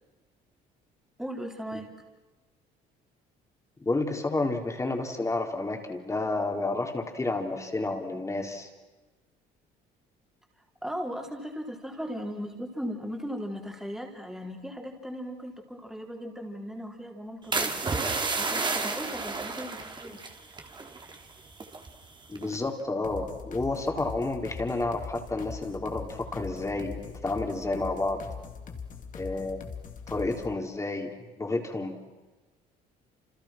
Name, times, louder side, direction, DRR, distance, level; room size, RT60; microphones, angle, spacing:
voice 1, 1.2-2.1 10.8-17.8 18.4-20.2, equal, 5° right, 2 dB, 4.3 m, -37 dB
voice 2, 3.8-8.7 22.3-28.2 29.1-29.6 30.1-31.1 31.4-32.0, left 2 dB, 15° left, 3 dB, 4.2 m, -30 dB
sound 1, 17.5-21.3 21.5-21.9 22.4-22.7, right 4 dB, 25° right, 3.4 m, -31 dB
sound 2, 23.0-30.5, left 6 dB, 50° left, 3.1 m, -41 dB
30.0 x 28.5 x 6.1 m, 1.2 s
cardioid pair, 110°, 17 cm